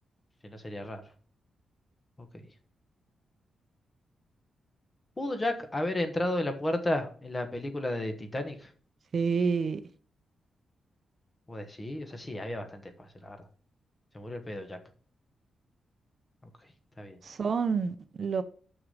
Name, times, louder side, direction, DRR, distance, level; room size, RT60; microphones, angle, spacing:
voice 1, 0.4-1.0 2.3-2.5 5.2-8.7 11.5-13.4 14.1-14.8 17.0-17.2, left 1 dB, 15° left, 1.3 m, -33 dB
voice 2, 9.1-9.8 17.2-18.4, right 5 dB, 40° right, 0.6 m, -28 dB
6.5 x 6.1 x 6.4 m
wide cardioid pair, 165°, 0 cm